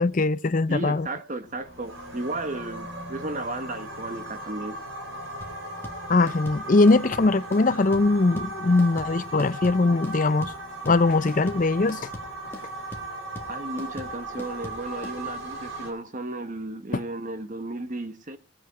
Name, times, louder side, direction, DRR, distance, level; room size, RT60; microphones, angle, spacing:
voice 1, 0.0-1.1 6.1-10.5 10.9-12.0, left 3 dB, 40° left, 0.5 m, -21 dB
voice 2, 0.7-4.8 13.5-18.4, right 2 dB, 35° right, 1.1 m, -34 dB
sound 1, 1.5-15.9, right 1 dB, 70° right, 4.0 m, -37 dB
sound 2, 5.4-15.2, equal, 10° left, 1.6 m, -41 dB
19.5 x 7.8 x 4.6 m
head